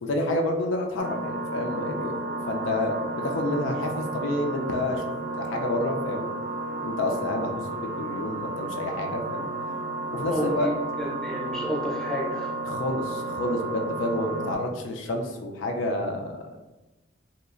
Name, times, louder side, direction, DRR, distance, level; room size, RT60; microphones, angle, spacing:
voice 1, 0.0-5.0 5.4-6.3 6.8-9.5 10.1-10.7 12.7-16.6, left 1 dB, 80° left, 2 dB, 0.4 m, -29 dB
sound 1, 1.0-14.6, right 2 dB, 50° right, 0.4 m, -32 dB
voice 2, 10.3-12.5, left 1 dB, 5° left, -5 dB, 0.5 m, -31 dB
2.9 x 2.4 x 2.4 m, 1.1 s
head